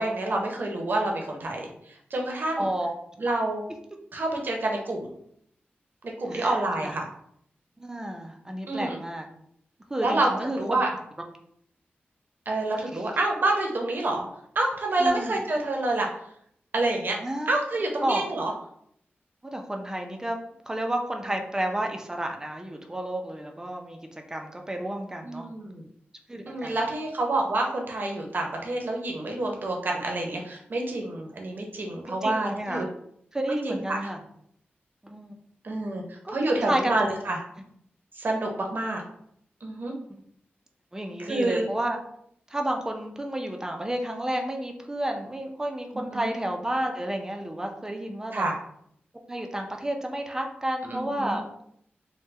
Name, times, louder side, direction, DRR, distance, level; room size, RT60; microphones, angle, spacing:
voice 1, 0.0-1.7 2.1-2.7 3.2-3.6 4.1-5.1 6.2-7.0 8.7-9.0 10.0-10.3 10.5-10.9 12.5-14.3 14.6-16.1 16.7-17.2 17.5-18.5 25.2-25.8 26.5-32.8 33.5-34.0 35.6-37.4 38.2-39.0 39.6-39.9 41.2-41.6 45.9-46.3 48.3-48.5 50.9-51.4, right 2 dB, 55° right, 1 dB, 0.7 m, -28 dB
voice 2, 2.6-2.9 6.3-7.0 7.8-9.3 9.9-10.8 12.9-13.1 15.0-15.4 17.2-17.5 18.0-18.3 19.4-20.4 20.7-25.5 26.3-26.8 32.1-32.9 33.3-34.2 35.0-35.3 36.2-36.4 36.7-37.0 40.1-40.2 40.9-42.0 42.5-48.5 49.3-51.6, right 1 dB, 15° right, 3 dB, 0.5 m, -31 dB
3.3 x 2.2 x 3.2 m, 0.70 s
wide cardioid pair, 100°, 4 cm